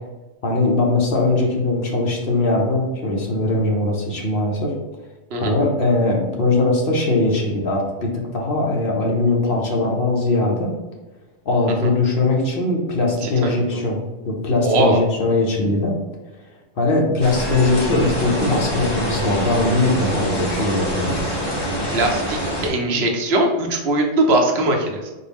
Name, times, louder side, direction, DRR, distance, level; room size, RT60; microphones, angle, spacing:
voice 1, 0.4-4.7 5.4-10.7 11.4-14.0 14.2-15.9 16.8-21.1, left 2 dB, 55° left, -1 dB, 0.8 m, -20 dB
voice 2, 13.2-13.8 14.6-15.0 21.9-25.1, right 2 dB, 65° right, 2 dB, 0.8 m, -20 dB
sound 1, 17.2-22.7, equal, 25° left, 0.7 m, -25 dB
4.1 x 2.0 x 3.4 m, 1.1 s
omnidirectional pair, 1.2 m